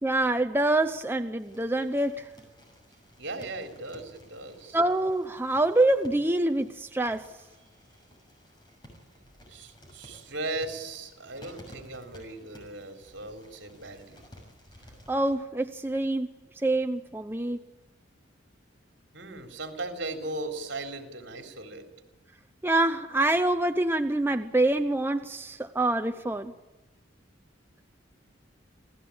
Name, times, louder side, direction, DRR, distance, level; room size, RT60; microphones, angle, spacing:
voice 1, 0.0-2.3 4.7-7.3 15.1-16.3 16.6-17.6 22.6-26.5, right 2 dB, 10° right, 7 dB, 0.7 m, -26 dB
sound 1, 1.4-15.4, equal, 20° left, 6.6 m, -54 dB
voice 2, 3.2-4.8 9.5-14.2 19.1-21.9, right 2 dB, 65° right, 5 dB, 3.7 m, -37 dB
27.5 x 17.5 x 8.6 m, 1.1 s
head